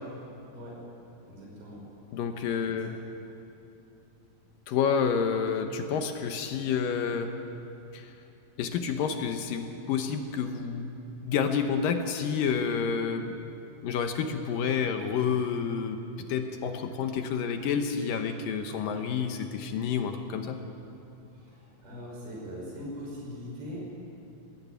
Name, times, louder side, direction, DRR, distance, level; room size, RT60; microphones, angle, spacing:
voice 1, 0.5-0.8 1.3-1.8 2.7-2.9 21.3-23.8, equal, 75° right, -3 dB, 7.5 m, -41 dB
voice 2, 2.1-3.0 4.7-7.3 7.9-8.1 8.6-10.9 11.2-13.3 13.8-16.0 16.3-20.6, left 6 dB, 70° left, 6 dB, 2.5 m, -29 dB
20.0 x 15.5 x 9.5 m, 2.7 s
omnidirectional pair, 4.4 m